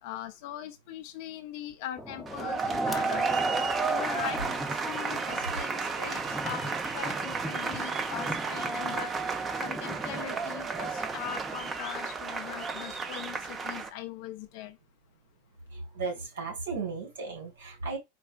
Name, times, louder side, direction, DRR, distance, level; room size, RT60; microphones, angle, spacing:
voice 1, 0.0-3.4 3.9-9.1 9.6-14.8, left 11 dB, 60° left, 0.5 m, -41 dB
sound 1, 2.0-11.8, equal, 5° left, 0.7 m, -42 dB
sound 2, 2.3-13.9, right 4 dB, 25° right, 0.7 m, -32 dB
voice 2, 15.7-18.0, right 4 dB, 85° right, 1.8 m, -35 dB
4.5 x 2.3 x 2.4 m
hypercardioid pair, 100°, 0 cm